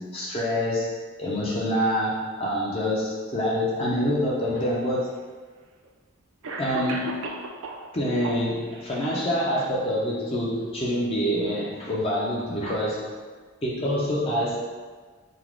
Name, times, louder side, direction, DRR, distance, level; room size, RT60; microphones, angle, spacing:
voice 1, 0.0-5.2 6.6-7.3 7.9-13.2 13.6-14.6, equal, 25° left, -4 dB, 0.4 m, -26 dB
Cough, 4.7-4.8 5.8-5.9 6.4-7.9 8.2-8.9, right 2 dB, 60° right, 0.4 m, -34 dB
3.9 x 2.2 x 4.4 m, 1.4 s
head